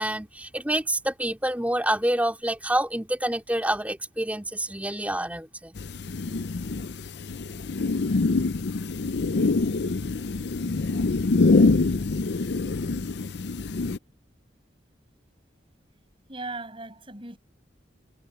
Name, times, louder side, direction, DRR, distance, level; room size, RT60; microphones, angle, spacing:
voice 1, 0.0-5.8, right 1 dB, 10° right, 3.5 m, -27 dB
sound 1, 5.8-14.0, left 3 dB, 65° left, 0.6 m, -25 dB
voice 2, 16.3-17.4, right 3 dB, 30° right, 6.3 m, -37 dB
head